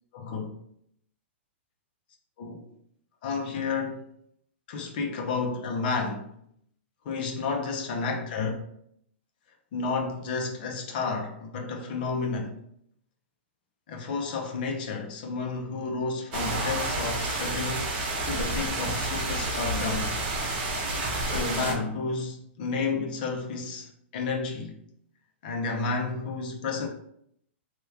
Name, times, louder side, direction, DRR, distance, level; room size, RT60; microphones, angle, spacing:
voice 1, 0.1-0.5 2.4-2.7 3.2-4.0 4.7-6.3 7.0-8.5 9.7-12.6 13.9-17.9 18.2-20.1 21.2-24.8 25.4-26.9, left 4 dB, 45° left, 0.6 m, -31 dB
sound 1, 16.3-21.7, right 2 dB, 45° right, 1.0 m, -30 dB
3.0 x 2.3 x 3.3 m
hypercardioid pair, 155°, 7 cm